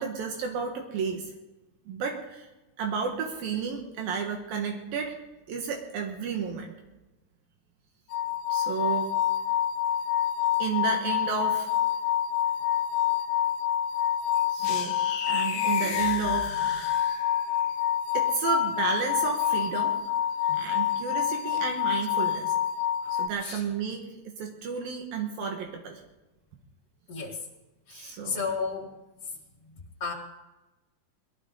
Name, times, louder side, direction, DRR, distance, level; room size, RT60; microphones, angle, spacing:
voice 1, 0.0-1.3 1.9-2.5 2.8-5.2 5.5-6.7 8.5-9.1 10.6-11.7 14.5-14.9 15.3-17.0 18.1-19.9 20.6-22.5 23.1-26.0 27.9-28.4, right 6 dB, 80° right, 2 dB, 3.3 m, -32 dB
sound 1, 8.1-23.3, left 10 dB, 80° left, 2.7 m, -27 dB
sound 2, 14.6-17.5, left 6 dB, 65° left, 2.6 m, -36 dB
voice 2, 27.1-27.4 27.9-28.9 29.7-29.8 30.0-30.1, left 5 dB, 50° left, -7 dB, 2.8 m, -33 dB
22.0 x 15.0 x 3.8 m, 1.1 s
omnidirectional pair, 4.1 m